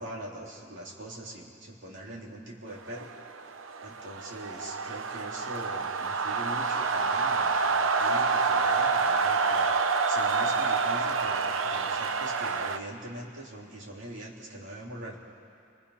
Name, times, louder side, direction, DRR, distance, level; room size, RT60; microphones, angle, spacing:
voice 1, 0.0-3.1 3.8-15.2, right 1 dB, 65° right, -2 dB, 3.3 m, -42 dB
sound 1, 2.9-12.8, right 4 dB, 90° right, 0.9 m, -27 dB
28.5 x 23.5 x 5.7 m, 2.5 s
head